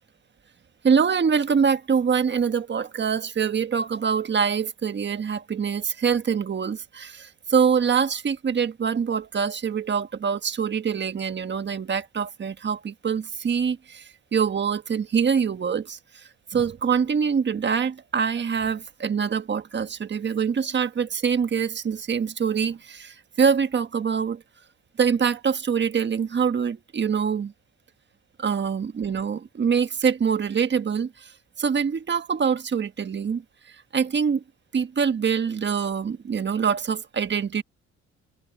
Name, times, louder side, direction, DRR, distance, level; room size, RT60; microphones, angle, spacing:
voice 1, 0.8-24.4 25.0-27.5 28.4-31.3 31.6-33.4 33.9-34.4 34.7-37.6, right 6 dB, 35° right, 1.4 m, -24 dB
cardioid pair, 90°, 30 cm